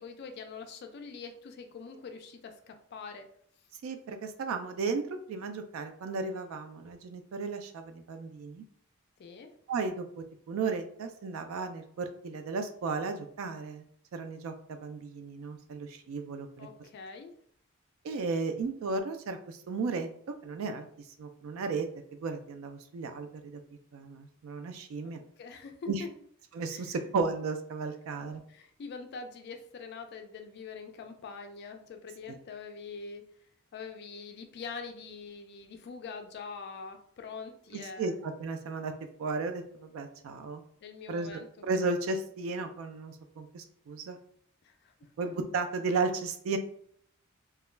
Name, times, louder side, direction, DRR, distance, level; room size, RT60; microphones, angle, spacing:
voice 1, 0.0-3.3 9.2-9.5 16.6-17.3 25.4-26.1 26.7-27.0 28.2-33.3 33.7-38.2 40.8-41.5 44.6-44.9, left 5 dB, 50° left, 6 dB, 0.3 m, -44 dB
voice 2, 3.8-8.6 9.7-13.8 14.1-16.7 18.0-20.9 21.2-23.6 23.9-25.2 25.9-26.0 26.5-28.4 38.0-38.9 39.2-40.6 41.1-44.2 45.2-46.6, right 4 dB, 75° right, 7 dB, 0.3 m, -34 dB
2.3 x 2.1 x 3.1 m, 0.64 s
head